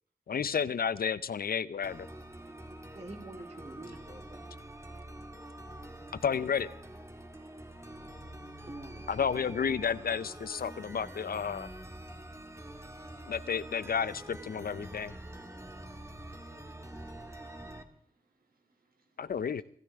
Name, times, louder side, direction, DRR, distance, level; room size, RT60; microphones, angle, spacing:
voice 1, 0.3-2.1 6.2-6.7 9.1-11.7 13.2-15.1 19.2-19.6, left 7 dB, 80° left, 16 dB, 0.7 m, -31 dB
sound 1, 1.8-17.8, right 1 dB, 20° right, 2.1 m, -46 dB
voice 2, 2.9-4.5 8.7-9.6, right 2 dB, 45° right, 2 dB, 3.6 m, -47 dB
voice 3, 16.5-19.0, right 3 dB, 75° right, 4 dB, 3.2 m, -75 dB
25.5 x 13.5 x 3.6 m, 0.64 s
cardioid pair, 55°, 15 cm